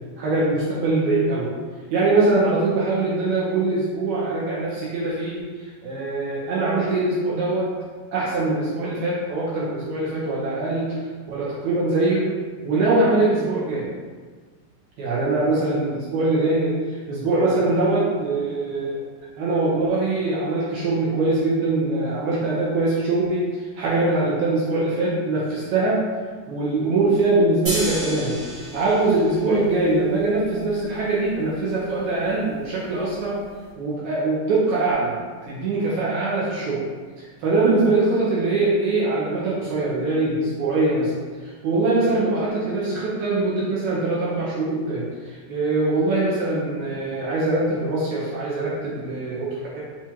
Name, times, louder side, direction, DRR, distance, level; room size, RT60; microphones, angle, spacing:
voice 1, 0.2-1.5 1.9-7.7 8.1-10.9 11.3-12.3 12.6-13.9 15.0-19.0 19.4-26.0 26.5-28.4 28.7-33.4 33.8-35.2 35.4-36.8 37.4-41.1 41.4-49.8, right 2 dB, 75° right, -7 dB, 1.8 m, -22 dB
sound 1, 27.7-33.7, right 1 dB, 45° right, 1.2 m, -34 dB
5.9 x 2.4 x 2.8 m, 1.5 s
omnidirectional pair, 4.0 m